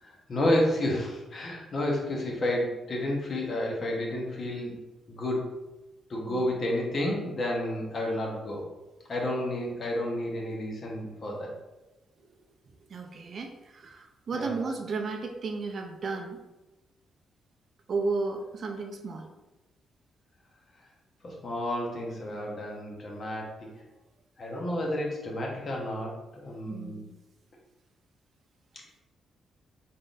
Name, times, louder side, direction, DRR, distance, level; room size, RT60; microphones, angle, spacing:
voice 1, 0.0-4.8 5.1-5.5 6.1-8.7 9.1-11.5 14.3-14.6 21.2-23.7 24.4-27.0, left 1 dB, 40° left, -1 dB, 0.9 m, -31 dB
voice 2, 12.9-16.4 17.9-19.3 26.5-27.1, right 3 dB, 45° right, 4 dB, 0.4 m, -34 dB
3.7 x 3.7 x 2.5 m, 1.1 s
cardioid pair, 135°, 0 cm